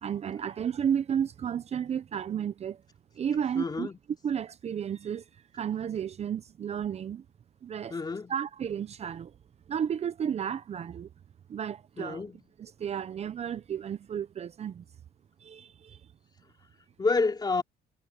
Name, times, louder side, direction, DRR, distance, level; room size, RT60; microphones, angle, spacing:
voice 1, 0.0-2.8 3.1-3.9 4.2-5.3 5.5-7.2 7.6-8.0 8.3-9.3 9.7-11.1 11.5-12.2 12.6-14.8 15.4-16.0, right 8 dB, 40° right, 0.7 m, -32 dB
voice 2, 3.5-4.0 7.9-8.3 12.0-12.4 17.0-17.6, left 4 dB, 25° left, 3.2 m, -29 dB
cardioid pair, 110°, 17 cm